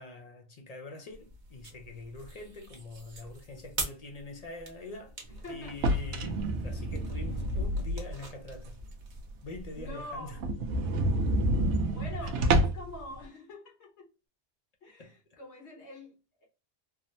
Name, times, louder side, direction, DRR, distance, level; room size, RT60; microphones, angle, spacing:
voice 1, 0.0-5.2 5.5-8.8 9.4-10.4 12.2-12.3 15.0-15.1, left 2 dB, 55° left, 0.4 m, -44 dB
sound 1, 1.1-9.9, right 2 dB, 45° right, 0.9 m, -44 dB
voice 2, 5.3-5.8 9.7-10.4 11.9-14.1 14.8-16.1 16.4-16.5, left 1 dB, 75° left, 1.4 m, -45 dB
sound 2, 5.7-8.2 8.7-8.8 9.2-9.3 9.5-9.6 9.9-10.0 10.3-12.9, right 1 dB, 85° right, 0.9 m, -28 dB
3.4 x 2.0 x 2.5 m
omnidirectional pair, 1.2 m